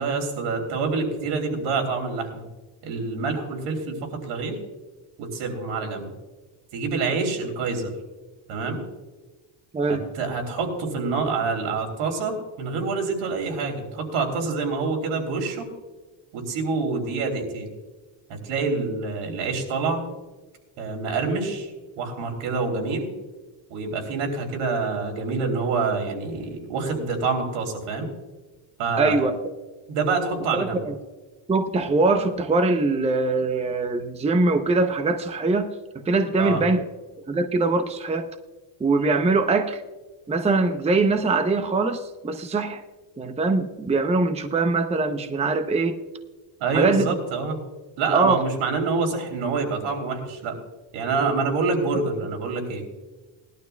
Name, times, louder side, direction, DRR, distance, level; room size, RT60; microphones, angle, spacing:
voice 1, 0.0-2.5 2.8-4.6 5.2-6.1 6.7-7.9 8.5-8.8 9.9-15.7 16.3-17.7 18.3-20.0 20.8-21.7 22.0-23.1 23.7-28.1 28.8-29.2 29.9-30.8 36.4-36.6 46.6-47.6 48.0-50.6 50.9-52.8, right 4 dB, 80° right, 2 dB, 3.3 m, -26 dB
voice 2, 9.7-10.1 29.0-29.3 30.5-31.0 31.5-36.8 37.3-38.3 38.8-39.8 40.3-42.8 43.2-46.0 46.7-47.1 48.1-48.4, right 3 dB, 15° right, 8 dB, 0.7 m, -22 dB
20.0 x 12.0 x 2.3 m, 1.3 s
cardioid pair, 125°, 50 cm